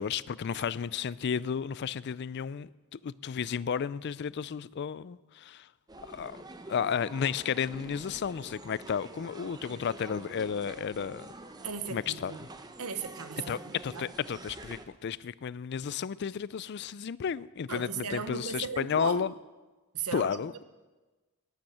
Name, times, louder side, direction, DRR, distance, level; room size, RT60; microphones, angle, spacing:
voice 1, 0.0-5.7 6.0-6.4 6.7-11.3 11.9-12.3 13.5-19.3 20.1-20.6, left 7 dB, 50° left, 0.4 m, -33 dB
sound 1, 5.9-14.9, right 2 dB, 20° right, 0.8 m, -47 dB
voice 2, 11.6-12.5 12.8-14.1 17.7-19.3 19.9-20.4, right 5 dB, 90° right, 1.1 m, -37 dB
11.5 x 10.5 x 8.5 m
head